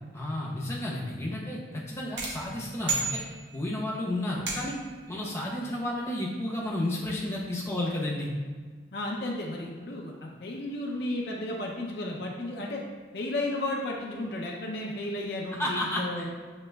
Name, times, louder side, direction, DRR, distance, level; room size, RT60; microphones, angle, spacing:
voice 1, 0.1-3.2 3.5-4.7 5.1-8.3 15.6-16.3, left 1 dB, 15° left, -5 dB, 0.7 m, -32 dB
sound 1, 2.2-3.8 4.5-5.0, right 3 dB, 65° right, 0.9 m, -33 dB
voice 2, 8.9-12.8 13.1-16.3, left 1 dB, 55° left, -1 dB, 0.5 m, -33 dB
7.2 x 2.9 x 2.2 m, 1.5 s
head